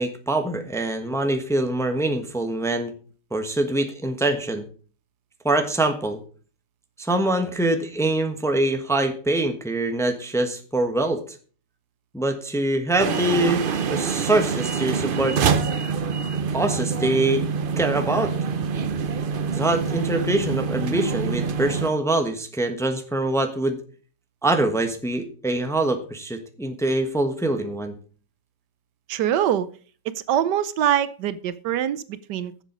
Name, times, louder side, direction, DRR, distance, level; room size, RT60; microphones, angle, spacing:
voice 1, 0.0-2.9 3.3-4.6 5.4-6.2 7.0-11.2 12.1-15.4 16.5-17.4 17.8-18.3 19.5-23.8 24.4-28.0, right 2 dB, ahead, 6 dB, 1.0 m, -24 dB
sound 1, 13.0-21.9, right 6 dB, 60° right, 0.5 m, -25 dB
voice 2, 29.1-29.7 30.0-32.6, right 10 dB, 80° right, 15 dB, 1.3 m, -24 dB
10.5 x 7.4 x 5.4 m, 0.41 s
omnidirectional pair, 1.9 m